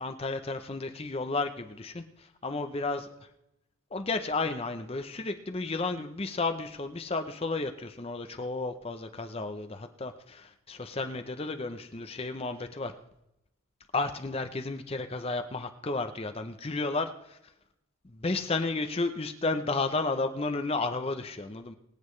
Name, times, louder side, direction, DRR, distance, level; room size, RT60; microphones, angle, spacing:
voice 1, 0.0-3.1 3.9-12.9 13.9-17.4 18.0-21.7, left 3 dB, 30° left, 7 dB, 0.6 m, -32 dB
24.0 x 8.6 x 3.2 m, 0.84 s
head